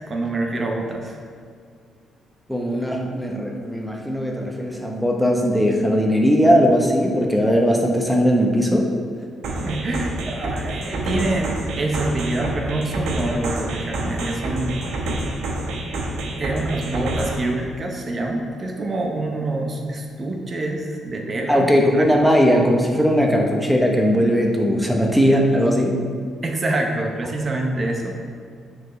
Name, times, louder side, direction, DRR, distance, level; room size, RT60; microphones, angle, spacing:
voice 1, 0.1-1.2 9.5-14.8 16.4-21.7 21.9-22.1 26.4-28.2, right 2 dB, 40° right, 2 dB, 0.8 m, -26 dB
voice 2, 2.5-8.9 21.5-26.0, equal, ahead, 0 dB, 0.8 m, -18 dB
sound 1, 9.4-17.4, right 2 dB, 85° right, 1.0 m, -27 dB
8.8 x 4.7 x 3.2 m, 2.2 s
cardioid pair, 90°, 0 cm